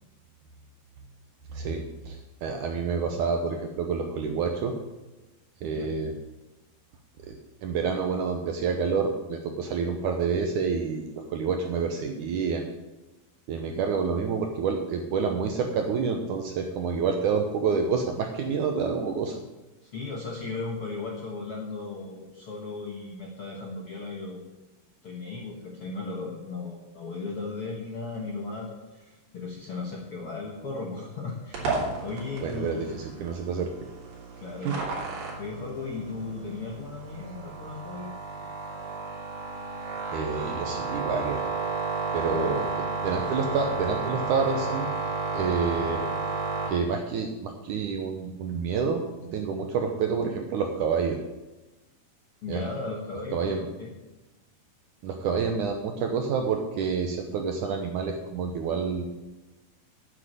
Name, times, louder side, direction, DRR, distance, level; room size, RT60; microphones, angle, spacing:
voice 1, 1.5-4.7 5.6-6.1 7.2-7.4 7.6-12.7 13.5-19.4 32.4-33.7 34.6-34.8 40.1-41.4 42.1-42.7 43.0-44.9 45.3-46.0 46.7-51.2 52.5-52.6 53.3-53.7 55.0-59.1, right 5 dB, 70° right, 4 dB, 1.9 m, -28 dB
voice 2, 19.8-24.4 25.0-32.9 34.3-34.9 35.4-38.1 42.3-42.5 52.4-53.9, left 3 dB, 60° left, -1 dB, 1.5 m, -36 dB
sound 1, 31.5-46.7, right 4 dB, 85° right, 4.9 m, -32 dB
10.0 x 7.5 x 9.0 m, 1.1 s
omnidirectional pair, 4.5 m